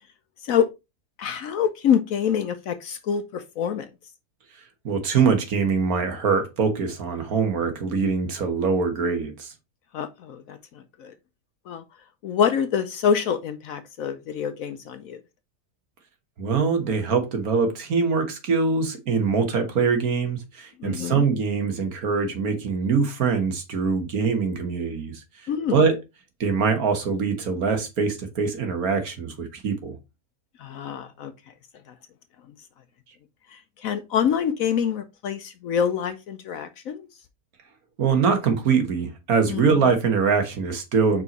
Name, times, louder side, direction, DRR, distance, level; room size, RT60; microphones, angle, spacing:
voice 1, 1.2-3.9 9.9-10.6 11.0-11.1 11.7-11.8 12.2-15.2 20.8-21.2 25.5-25.8 30.6-31.3 33.8-37.1 39.5-39.7, left 8 dB, 65° left, 1.0 m, -26 dB
voice 2, 4.8-9.5 16.4-25.2 25.7-26.0 26.4-29.9 38.0-41.2, right 5 dB, 60° right, 1.7 m, -23 dB
5.4 x 4.5 x 4.0 m
omnidirectional pair, 1.8 m